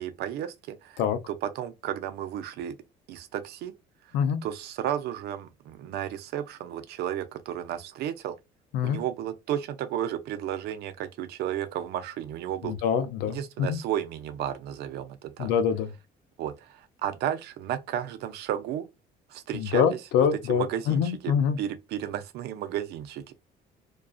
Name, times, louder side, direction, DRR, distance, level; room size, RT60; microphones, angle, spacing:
voice 1, 0.0-1.0 1.3-2.8 3.1-3.7 4.4-8.4 8.8-12.7 13.3-15.5 16.4-18.9 19.3-23.3, right 10 dB, 75° right, 0.5 m, -33 dB
voice 2, 12.6-13.8 15.4-15.9 19.5-21.6, left 7 dB, 85° left, 0.5 m, -25 dB
2.4 x 2.3 x 2.3 m
cardioid pair, 110°, 17 cm